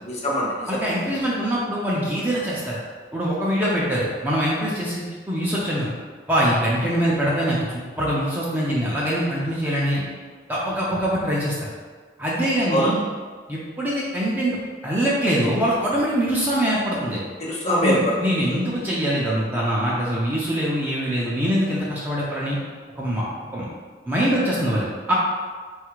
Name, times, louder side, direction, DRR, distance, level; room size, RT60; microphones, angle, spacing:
voice 1, 0.0-0.8 12.7-12.9 17.4-18.4, equal, 35° left, -4 dB, 0.8 m, -23 dB
voice 2, 0.7-2.8 3.1-5.9 6.3-7.6 8.0-10.0 10.5-11.5 12.2-13.0 13.5-17.2 17.8-22.6 23.0-23.2 23.5-23.7 24.1-25.1, equal, 10° right, -6 dB, 0.5 m, -23 dB
4.1 x 2.4 x 4.5 m, 1.5 s
head